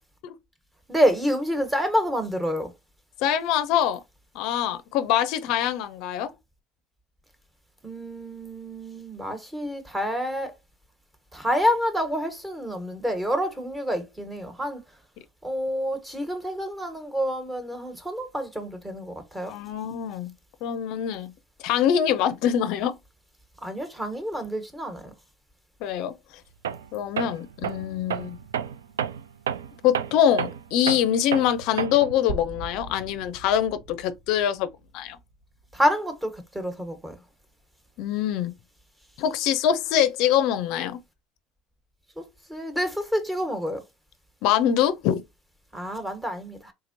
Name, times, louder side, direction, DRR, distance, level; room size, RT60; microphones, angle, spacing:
voice 1, 0.9-2.7 7.8-10.5 11.3-14.8 15.4-19.5 23.6-25.1 35.7-37.1 42.2-42.3 42.5-43.8 45.7-46.7, equal, 10° right, 1.3 m, -28 dB
voice 2, 3.2-4.0 4.3-6.3 19.5-20.3 20.6-21.3 21.6-23.0 25.8-26.1 26.9-28.4 29.8-34.7 34.9-35.2 38.0-38.5 39.2-41.0 44.4-45.2, left 10 dB, 65° left, 0.4 m, -24 dB
Tools, 26.6-26.9 27.2-32.2, right 8 dB, 90° right, 0.3 m, -31 dB
sound 1, 32.3-36.2, right 1 dB, 65° right, 0.9 m, -40 dB
3.7 x 2.8 x 2.6 m
hypercardioid pair, 75°, 0 cm